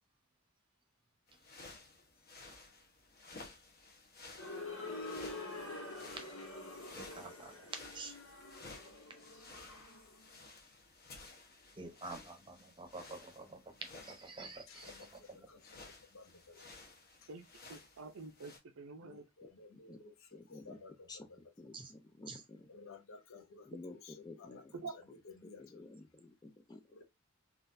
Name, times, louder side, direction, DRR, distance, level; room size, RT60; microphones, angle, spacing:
sound 1, 1.3-18.6, left 3 dB, 45° left, 0.9 m, -56 dB
sound 2, 4.4-10.3, left 2 dB, 85° left, 1.4 m, -46 dB
voice 1, 7.0-8.2 11.8-15.4 21.7-21.9 22.3-22.4, right 3 dB, 25° right, 0.7 m, -48 dB
voice 2, 14.7-16.7 17.2-17.3 19.0-21.4 22.7-24.6 24.9-25.8 26.9-27.0, left 4 dB, 70° left, 0.7 m, -56 dB
voice 3, 17.7-19.2 24.7-25.0, right 4 dB, 75° right, 0.6 m, -47 dB
voice 4, 19.4-20.0 20.3-20.8 21.1-21.3 21.6-22.7 23.6-24.9 25.4-26.8, left 2 dB, 20° left, 0.3 m, -52 dB
3.8 x 2.5 x 2.5 m
head